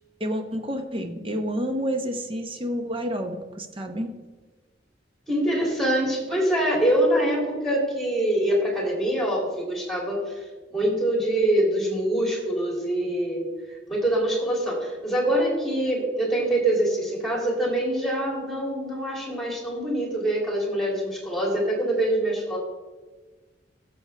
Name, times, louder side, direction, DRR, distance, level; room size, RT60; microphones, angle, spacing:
voice 1, 0.2-4.1, equal, 30° right, 5 dB, 1.0 m, -29 dB
voice 2, 5.3-10.2 10.7-13.5 13.9-22.6, right 1 dB, ahead, -2 dB, 2.9 m, -24 dB
16.0 x 7.2 x 3.4 m, 1.3 s
head